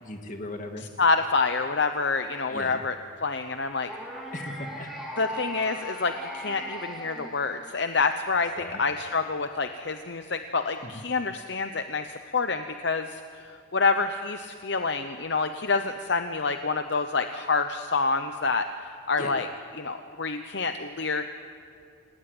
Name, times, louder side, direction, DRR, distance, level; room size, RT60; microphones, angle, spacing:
voice 1, 0.0-0.9 2.5-2.8 4.3-4.9 8.6-8.8 10.8-11.0 19.2-19.5, left 1 dB, 40° left, 4 dB, 2.2 m, -38 dB
voice 2, 1.0-2.9 3.2-3.9 5.2-19.5 19.8-21.3, left 4 dB, 55° left, 7 dB, 0.9 m, -27 dB
sound 1, 3.9-8.1, equal, ahead, 4.0 m, -38 dB
27.5 x 18.5 x 9.7 m, 2.5 s
head